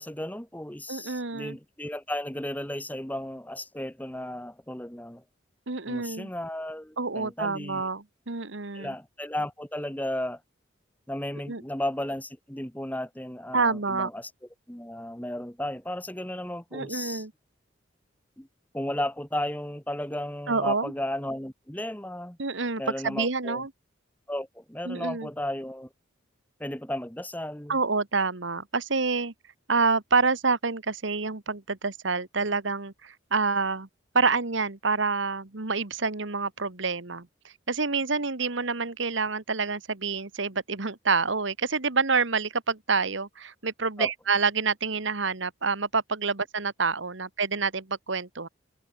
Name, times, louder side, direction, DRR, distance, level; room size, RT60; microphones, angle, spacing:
voice 1, 0.0-5.2 5.9-7.9 8.7-10.4 11.1-14.3 14.7-17.2 18.4-18.5 18.7-22.4 22.8-23.6 24.3-25.9 26.6-27.8 44.0-44.1, left 1 dB, 10° left, 1.5 m, -34 dB
voice 2, 0.9-1.6 5.7-6.3 7.0-8.9 11.5-11.6 13.5-14.1 16.7-17.3 20.5-20.9 22.4-23.7 24.8-25.3 27.7-29.3 29.7-33.9 34.1-37.3 37.7-48.5, right 4 dB, 70° right, 1.6 m, -27 dB
head